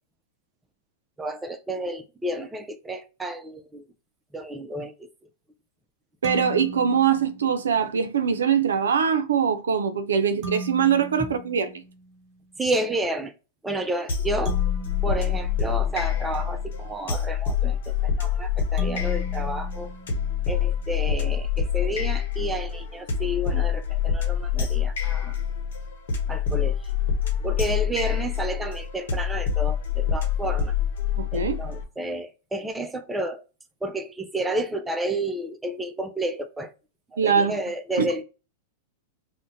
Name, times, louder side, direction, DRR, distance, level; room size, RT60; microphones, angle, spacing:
voice 1, 1.2-3.9 4.3-5.1 12.6-13.3 13.6-14.6 15.0-19.9 20.5-25.4 26.3-26.9 27.4-30.8 31.3-33.4 33.8-36.7 37.1-38.2, right 1 dB, 10° right, 0.4 m, -31 dB
sound 1, 6.2-7.9 10.4-12.4 14.5-16.6 18.8-20.8, right 2 dB, 45° right, 1.1 m, -39 dB
voice 2, 6.2-11.8 31.2-31.6 37.2-37.6 38.0-38.1, right 7 dB, 85° right, 0.4 m, -22 dB
sound 2, 14.1-31.8, left 8 dB, 75° left, 0.9 m, -26 dB
2.5 x 2.1 x 3.8 m
hypercardioid pair, 110°, 0 cm